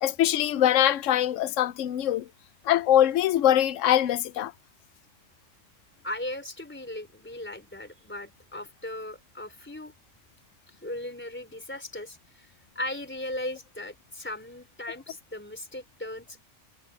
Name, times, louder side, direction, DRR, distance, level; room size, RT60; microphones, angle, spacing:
voice 1, 0.0-2.3 2.7-4.5, left 11 dB, 85° left, 1.0 m, -23 dB
voice 2, 6.0-9.9 10.7-12.5 12.8-16.4, left 1 dB, 10° left, 3.8 m, -37 dB
omnidirectional pair, 1.3 m